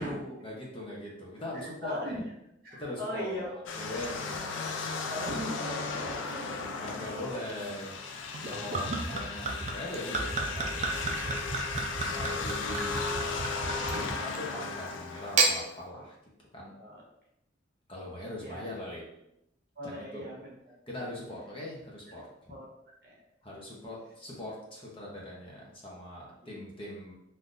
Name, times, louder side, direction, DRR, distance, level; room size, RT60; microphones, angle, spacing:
voice 1, 0.0-2.2 2.7-3.5 3.8-4.7 6.7-8.0 8.4-11.4 12.0-13.3 13.9-14.1 14.4-16.2 16.5-16.7 17.9-19.0 19.8-20.3 20.9-22.6 23.4-27.1, left 1 dB, 30° left, -3 dB, 0.7 m, -41 dB
voice 2, 1.5-2.2 2.6-4.2 5.0-7.4 13.9-14.0 16.7-17.0 18.4-18.7 19.7-20.7 22.5-22.7 23.0-23.2 26.4-26.6, equal, 50° right, -4 dB, 1.1 m, -40 dB
sound 1, 3.7-15.8, left 4 dB, 80° left, 0.4 m, -36 dB
Gurgling / Chink clink / Liquid, 8.3-14.5 15.2-15.6, right 3 dB, 35° right, 0.4 m, -32 dB
3.7 x 2.6 x 2.4 m, 0.82 s
head